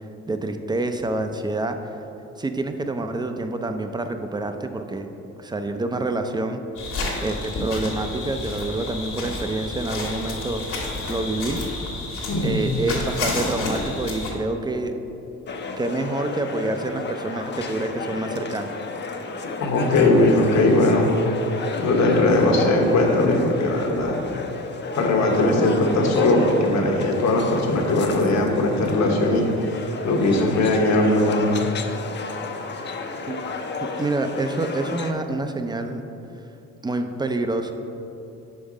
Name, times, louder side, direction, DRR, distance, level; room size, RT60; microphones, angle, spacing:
voice 1, 0.3-1.8 2.4-5.1 5.4-6.6 7.2-10.6 11.1-11.6 12.4-14.9 15.8-18.7 33.3-33.4 34.0-36.0 36.8-37.7, right 2 dB, 15° right, 7 dB, 0.4 m, -27 dB
sound 1, 6.7-14.3, left 2 dB, 85° left, 1.5 m, -30 dB
voice 2, 12.3-12.6 19.6-21.1 21.8-24.3 24.9-29.5 29.7-31.5, left 2 dB, 65° left, 1 dB, 1.1 m, -19 dB
sound 2, 15.5-35.1, left 4 dB, 35° left, 0.6 m, -32 dB
5.3 x 5.3 x 4.9 m, 2.8 s
cardioid pair, 90°, 30 cm